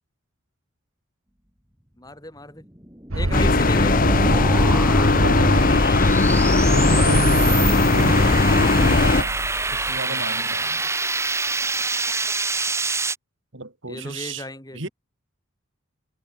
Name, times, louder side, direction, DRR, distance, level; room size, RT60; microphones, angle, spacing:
voice 1, 2.0-2.7 3.1-4.1 10.1-10.5 13.9-14.9, left 2 dB, 20° left, 7.4 m, -36 dB
sound 1, 2.6-13.2, right 3 dB, 15° right, 3.1 m, -27 dB
sound 2, 3.1-10.0, right 1 dB, 80° right, 2.2 m, -28 dB
sound 3, 3.3-9.2, left 3 dB, 40° left, 0.9 m, -18 dB
voice 2, 5.2-5.7 6.7-7.6 7.9-10.8 13.5-14.5 14.7-14.9, right 2 dB, 60° right, 2.7 m, -31 dB
head